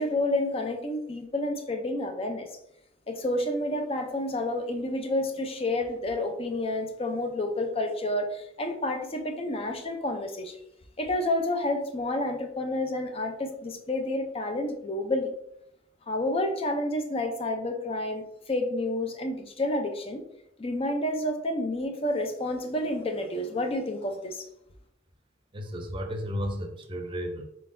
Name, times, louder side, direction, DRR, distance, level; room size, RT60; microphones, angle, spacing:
voice 1, 0.0-2.5 3.1-10.6 11.0-15.3 16.1-20.2 20.6-24.4, left 1 dB, 30° left, 5 dB, 0.5 m, -29 dB
voice 2, 25.5-27.4, equal, 25° right, 4 dB, 0.6 m, -33 dB
4.3 x 3.8 x 2.6 m, 0.79 s
head